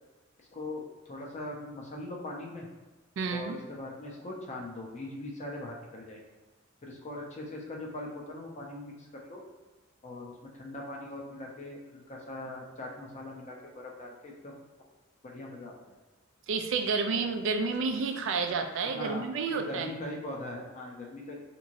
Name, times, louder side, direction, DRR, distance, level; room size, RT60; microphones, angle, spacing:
voice 1, 0.5-2.7 3.3-6.2 6.8-9.4 10.0-14.6 15.2-15.8 18.8-21.4, left 1 dB, 35° left, -1 dB, 0.6 m, -41 dB
voice 2, 3.2-3.6 16.5-19.9, right 4 dB, 65° right, 5 dB, 0.3 m, -30 dB
2.9 x 2.7 x 2.6 m, 1.2 s
head